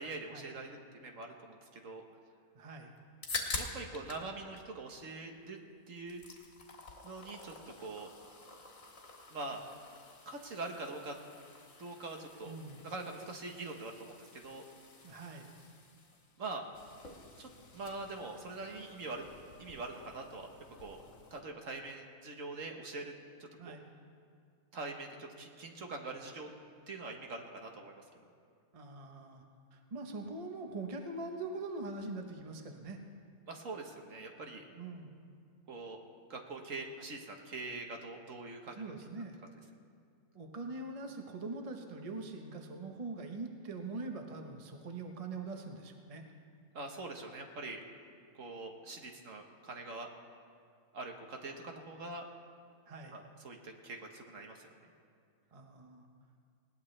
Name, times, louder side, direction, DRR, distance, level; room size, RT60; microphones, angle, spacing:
voice 1, 0.0-2.0 3.5-5.6 5.9-6.2 7.0-8.1 9.3-9.6 10.3-11.1 11.8-12.5 12.8-14.6 16.4-16.6 17.4-19.2 19.6-20.5 20.8-21.0 21.3-23.1 23.4-23.8 24.7-26.5 26.9-28.0 33.5-34.6 35.7-36.0 36.3-38.9 46.7-47.8 48.3-50.1 50.9-52.3 53.1-54.7, right 3 dB, 55° right, 3 dB, 1.5 m, -43 dB
voice 2, 2.5-2.9 12.4-12.8 15.0-15.5 23.6-23.8 28.7-29.4 29.7-33.0 34.7-35.3 38.7-39.4 40.3-46.2 52.9-53.2 55.5-56.1, right 3 dB, 25° right, 3 dB, 0.9 m, -43 dB
sound 1, 3.0-4.3 4.6-5.6 5.9-21.4, left 3 dB, 55° left, 1.9 m, -48 dB
19.5 x 17.5 x 3.3 m, 2.2 s
omnidirectional pair, 1.7 m